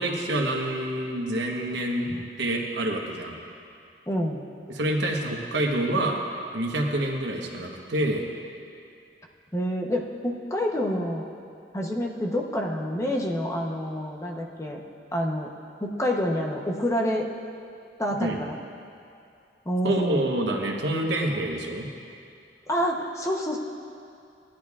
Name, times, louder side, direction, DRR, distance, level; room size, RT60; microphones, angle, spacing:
voice 1, 0.0-2.1 2.4-3.3 4.7-6.2 6.5-8.2 18.2-18.4 19.8-21.9, right 1 dB, 85° right, 1 dB, 1.2 m, -27 dB
voice 2, 4.1-4.4 9.5-11.3 11.7-14.8 15.1-15.5 15.8-17.3 18.0-18.6 19.7-20.3 22.7-23.6, equal, 15° left, 0 dB, 0.9 m, -27 dB
17.0 x 10.0 x 2.4 m, 2.5 s
head